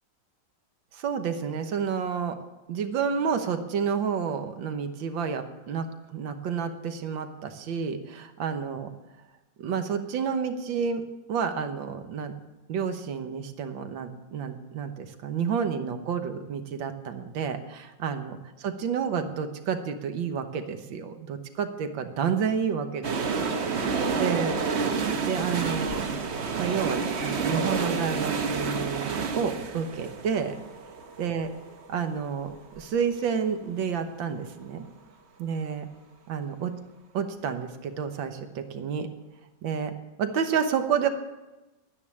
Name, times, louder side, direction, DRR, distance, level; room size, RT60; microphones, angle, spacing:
voice 1, 0.9-2.4 2.7-5.9 6.1-8.9 9.6-11.0 11.3-12.3 12.7-24.6 25.2-26.1 26.5-30.6 31.2-31.5 31.9-34.8 35.4-35.9 36.3-36.7 37.1-39.1 39.6-41.1, right 6 dB, 85° right, 8 dB, 1.8 m, -30 dB
sound 1, 23.0-32.8 33.1-33.2, right 5 dB, 45° right, 1.0 m, -29 dB
12.0 x 9.7 x 8.5 m, 1.1 s
omnidirectional pair, 2.0 m